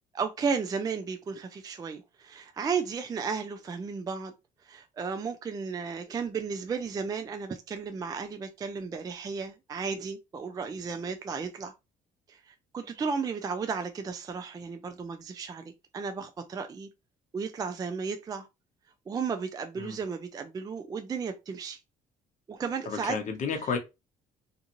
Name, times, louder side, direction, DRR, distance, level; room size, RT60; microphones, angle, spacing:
voice 1, 0.1-4.3 4.6-11.7 12.3-16.9 17.3-18.5 19.1-21.8 22.5-23.2, right 5 dB, 20° right, 0.3 m, -34 dB
voice 2, 22.9-23.8, left 5 dB, 45° left, 0.8 m, -31 dB
2.5 x 2.4 x 2.9 m
cardioid pair, 110°, 17 cm